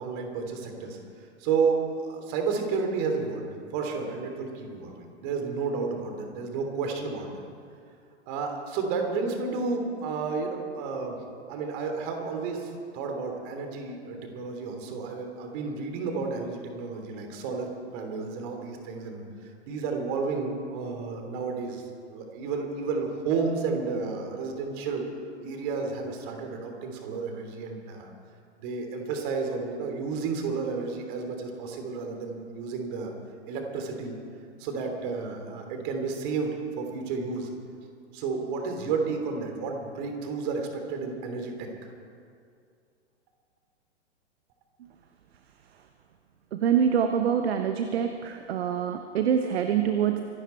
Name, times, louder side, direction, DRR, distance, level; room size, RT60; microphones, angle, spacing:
voice 1, 0.0-7.4 8.3-11.2 11.5-19.2 19.7-25.1 25.4-28.1 28.6-33.1 33.5-34.1 34.6-37.5 38.1-41.9, right 4 dB, 45° right, 3 dB, 3.2 m, -31 dB
voice 2, 46.5-50.2, right 8 dB, 60° right, 7 dB, 1.1 m, -25 dB
25.0 x 12.0 x 4.5 m, 2.3 s
figure-of-eight pair, 105°, 35 cm